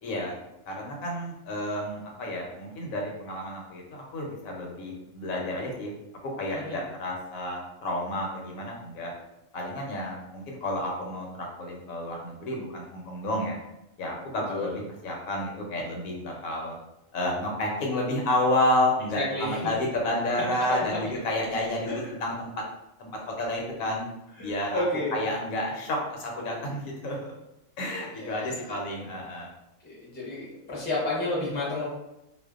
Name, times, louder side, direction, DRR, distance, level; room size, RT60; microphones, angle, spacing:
voice 1, 0.0-0.4 0.7-5.9 6.3-9.1 9.5-13.6 14.0-16.8 17.1-22.5 23.0-23.1 23.4-24.1 24.4-24.8 25.1-27.3 27.8-29.5, left 1 dB, 80° left, -1 dB, 1.0 m, -30 dB
voice 2, 19.2-19.7 21.9-22.1 24.4-25.3 28.1-28.7 29.8-31.8, left 2 dB, 15° left, -6 dB, 0.4 m, -31 dB
2.5 x 2.1 x 2.3 m, 0.89 s
omnidirectional pair, 1.4 m